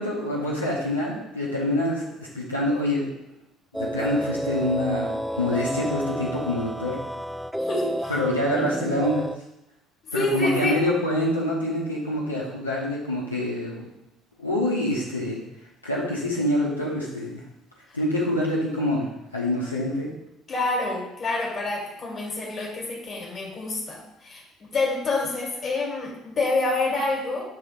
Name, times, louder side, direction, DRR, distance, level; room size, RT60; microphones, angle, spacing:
voice 1, 0.0-3.1 3.8-7.0 8.1-9.3 10.1-13.9 14.4-15.4 15.8-17.4 17.9-19.1 19.3-20.1, left 1 dB, 90° left, -5 dB, 1.0 m, -26 dB
sound 1, 3.7-9.4, equal, ahead, 0.3 m, -30 dB
voice 2, 7.6-8.1 10.1-10.8 20.5-27.5, left 2 dB, 40° left, -3 dB, 1.8 m, -27 dB
6.4 x 3.3 x 5.7 m, 0.86 s
figure-of-eight pair, 55°, 0 cm